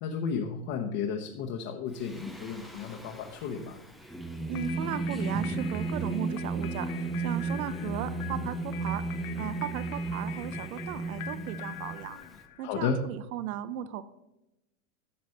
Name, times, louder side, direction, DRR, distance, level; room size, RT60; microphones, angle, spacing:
voice 1, 0.0-3.8 12.6-13.0, left 6 dB, 45° left, 1 dB, 1.0 m, -33 dB
Singing, 2.0-12.4, right 3 dB, ahead, 0.3 m, -34 dB
sound 1, 4.5-12.8, left 13 dB, 85° left, 0.8 m, -45 dB
voice 2, 4.5-9.0 9.4-12.2 12.6-14.0, right 11 dB, 80° right, 14 dB, 0.8 m, -36 dB
11.0 x 6.0 x 5.5 m, 0.93 s
supercardioid pair, 140°, 42 cm